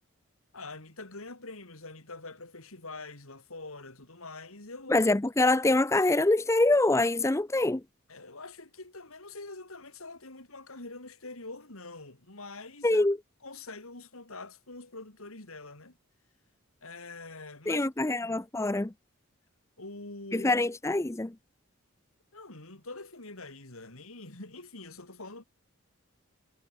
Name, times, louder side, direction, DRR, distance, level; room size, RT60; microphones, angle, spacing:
voice 1, 0.5-5.1 8.1-13.1 13.4-16.0 16.8-18.4 19.8-20.5 22.3-25.4, left 3 dB, 75° left, 4.2 m, -45 dB
voice 2, 4.9-7.8 12.8-13.2 17.7-18.9 20.3-21.3, left 2 dB, 15° left, 0.5 m, -25 dB
head